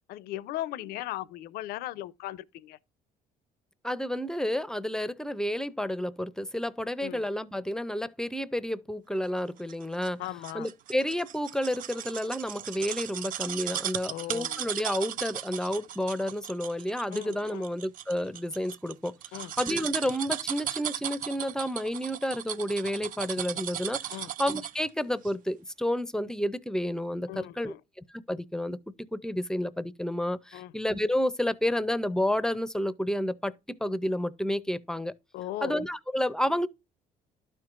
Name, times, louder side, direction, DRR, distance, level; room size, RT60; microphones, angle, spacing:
voice 1, 0.1-2.8 7.0-7.2 10.2-10.7 14.1-14.7 17.1-17.7 19.3-19.5 24.1-24.3 27.3-27.8 30.5-30.7 35.3-35.8, left 14 dB, 85° left, 0.5 m, -38 dB
voice 2, 3.8-10.2 10.5-27.7 28.1-28.8 29.1-33.5 33.8-35.1 35.6-36.7, left 1 dB, 5° left, 0.5 m, -30 dB
sound 1, 9.7-24.9 25.2-25.3, right 11 dB, 60° right, 0.5 m, -36 dB
12.0 x 4.5 x 2.5 m
cardioid pair, 110°, 16 cm